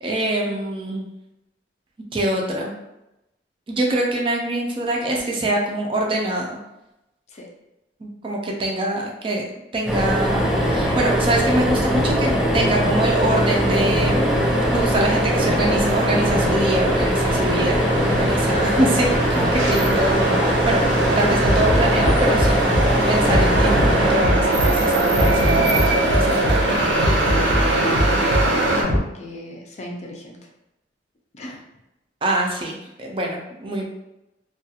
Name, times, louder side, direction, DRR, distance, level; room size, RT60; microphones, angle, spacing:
voice 1, 0.0-1.0 2.1-2.7 3.7-6.6 8.0-9.4 9.7-20.9 21.2-26.8 32.2-33.9, right 1 dB, 30° right, -1 dB, 0.4 m, -24 dB
sound 1, 9.9-25.1 26.8-27.0 27.3-27.4, equal, ahead, 0.9 m, -22 dB
sound 2, 10.3-29.0, equal, 80° left, 0.7 m, -25 dB
sound 3, 13.1-28.8, right 2 dB, 75° right, 0.6 m, -23 dB
voice 2, 28.1-28.9 29.2-30.4 31.3-31.6, left 1 dB, 40° left, 0 dB, 0.4 m, -36 dB
2.3 x 2.3 x 2.7 m, 0.91 s
head